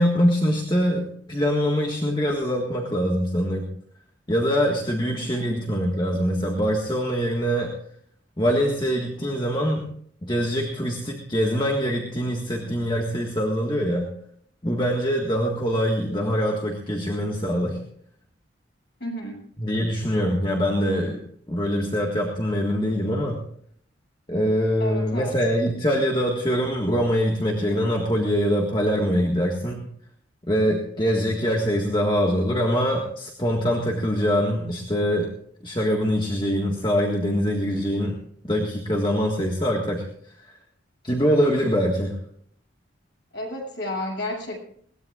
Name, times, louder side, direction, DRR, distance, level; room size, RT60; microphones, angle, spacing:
voice 1, 0.0-3.7 4.3-7.8 8.4-9.8 10.2-14.1 14.6-17.8 19.6-23.4 24.3-29.9 30.5-35.3 35.6-38.2 38.4-40.0 40.4-40.5 41.0-42.1, equal, 25° left, 0 dB, 1.7 m, -23 dB
voice 2, 5.2-5.6 19.0-19.4 24.8-25.3 43.3-44.6, left 1 dB, 65° left, -1 dB, 7.2 m, -32 dB
21.5 x 18.5 x 2.5 m, 0.63 s
head